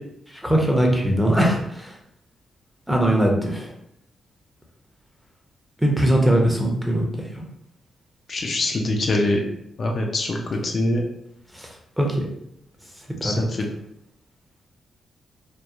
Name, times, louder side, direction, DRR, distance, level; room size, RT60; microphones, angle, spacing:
voice 1, 0.3-2.0 2.9-3.7 5.8-7.1 7.3-7.4 11.5-12.2 13.2-13.5, right 1 dB, 5° right, -1 dB, 0.7 m, -21 dB
voice 2, 8.3-9.4 9.8-10.4 10.6-11.0 13.2-13.5, left 2 dB, 50° left, 1 dB, 0.4 m, -23 dB
2.9 x 2.0 x 2.4 m, 0.75 s
cardioid pair, 70°, 0 cm